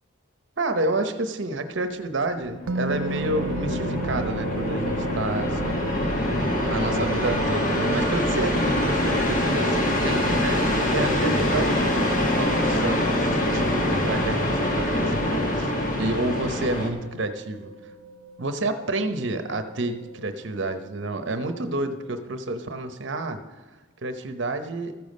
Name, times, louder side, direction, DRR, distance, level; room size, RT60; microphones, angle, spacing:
voice 1, 0.6-6.1 6.6-17.7 18.4-23.4 24.0-24.9, right 2 dB, 60° right, 8 dB, 0.8 m, -30 dB
sound 1, 2.5-16.9, left 1 dB, 40° left, 1.3 m, -24 dB
sound 2, 2.7-22.0, right 2 dB, 80° right, 0.5 m, -38 dB
14.0 x 7.1 x 5.3 m, 1.2 s
head